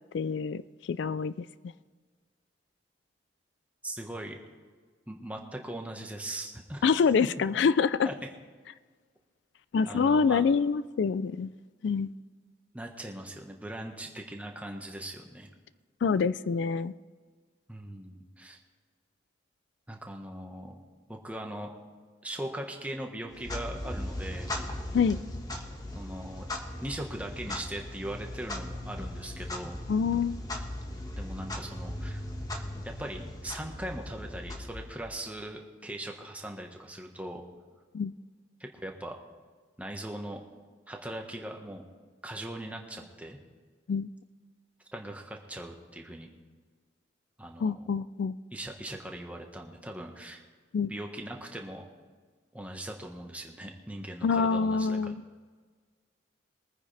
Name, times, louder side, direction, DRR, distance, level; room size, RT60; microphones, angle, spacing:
voice 1, 0.1-0.6 0.9-1.5 6.8-8.1 9.7-11.5 11.8-12.1 16.0-16.9 24.9-25.2 29.9-30.4 37.9-38.1 43.9-44.1 47.6-48.4 50.7-50.9 54.2-55.2, left 5 dB, 70° left, 16 dB, 0.3 m, -26 dB
voice 2, 3.8-4.4 5.1-6.8 8.0-8.1 9.9-10.4 12.7-15.5 17.7-18.6 19.9-20.7 21.1-21.7 22.2-24.5 25.9-26.5 26.8-29.8 31.2-32.2 32.8-37.4 38.6-39.2 39.8-40.4 40.9-41.8 42.2-43.4 44.9-46.3 47.4-47.8 48.5-50.4 50.9-51.9 52.5-55.1, right 1 dB, 10° right, 2 dB, 1.3 m, -40 dB
Clock, 23.3-35.3, left 1 dB, 20° left, 1.3 m, -38 dB
22.5 x 9.6 x 3.4 m, 1.5 s
head